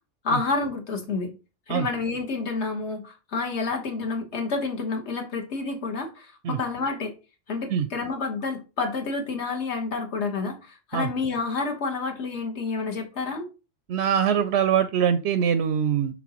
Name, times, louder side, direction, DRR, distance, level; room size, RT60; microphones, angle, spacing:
voice 1, 0.2-1.3 1.7-7.1 7.5-13.5, left 4 dB, 60° left, 1.6 m, -29 dB
voice 2, 13.9-16.2, right 8 dB, 65° right, 0.8 m, -23 dB
6.1 x 5.7 x 2.9 m
omnidirectional pair, 1.3 m